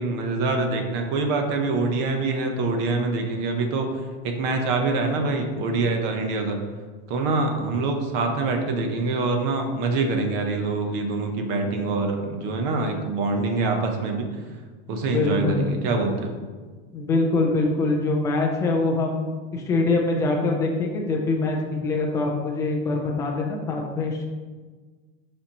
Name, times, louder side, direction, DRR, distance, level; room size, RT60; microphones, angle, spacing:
voice 1, 0.0-6.6 7.1-14.3 14.9-16.3, right 3 dB, 30° right, 4 dB, 0.8 m, -25 dB
voice 2, 15.1-15.9 16.9-24.3, left 3 dB, 10° left, 0 dB, 0.4 m, -24 dB
7.1 x 5.3 x 2.9 m, 1.4 s
supercardioid pair, 170°, 34 cm